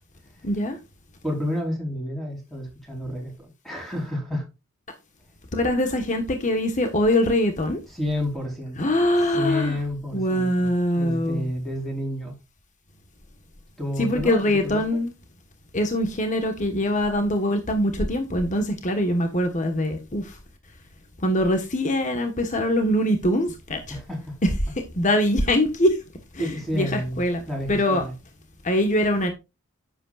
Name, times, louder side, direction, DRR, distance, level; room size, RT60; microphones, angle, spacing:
voice 1, 0.4-0.8 5.5-7.8 8.8-9.8 10.1-11.5 14.0-15.1 15.7-20.4 21.2-24.0 24.4-24.5 24.9-26.0 26.3-27.4 27.7-28.0 28.6-29.3, left 1 dB, 35° left, 1.4 m, -23 dB
voice 2, 1.2-4.5 7.9-8.9 9.3-12.4 13.8-14.8 23.9-24.4 26.4-28.1, left 1 dB, ahead, 4.3 m, -30 dB
10.5 x 8.2 x 2.4 m
head